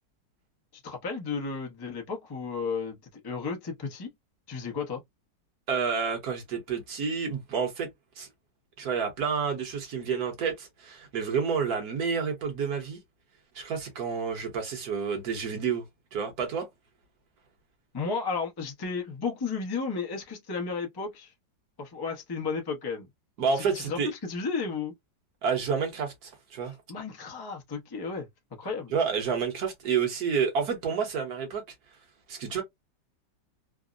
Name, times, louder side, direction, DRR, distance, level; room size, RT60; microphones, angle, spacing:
voice 1, 0.8-4.1 4.5-5.0 17.9-21.3 21.8-23.1 23.5-24.9 26.6-28.3 28.6-28.9, left 5 dB, 35° left, 0.3 m, -33 dB
voice 2, 5.7-7.9 8.2-8.3 8.8-13.0 13.5-15.8 16.1-16.7 23.4-24.1 25.4-26.7 28.9-31.6 32.3-32.6, right 6 dB, 65° right, 1.4 m, -29 dB
3.4 x 2.0 x 2.4 m
omnidirectional pair, 1.8 m